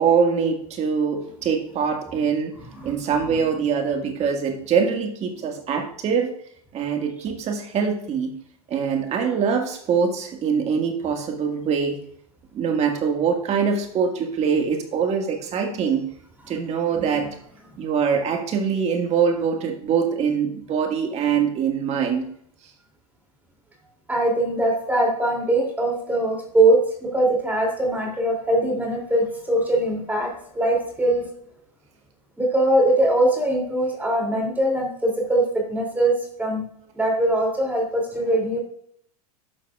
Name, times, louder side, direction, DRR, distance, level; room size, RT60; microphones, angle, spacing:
voice 1, 0.0-2.5 2.8-6.3 6.7-8.3 8.7-12.0 12.5-16.0 16.5-17.4 17.8-22.3, right 6 dB, 35° right, 3 dB, 1.8 m, -23 dB
voice 2, 24.1-31.2 32.4-35.4 35.7-36.1 36.4-36.6 37.0-38.6, right 1 dB, 10° right, -1 dB, 2.7 m, -21 dB
12.0 x 6.2 x 2.4 m, 0.67 s
hypercardioid pair, 105°, 20 cm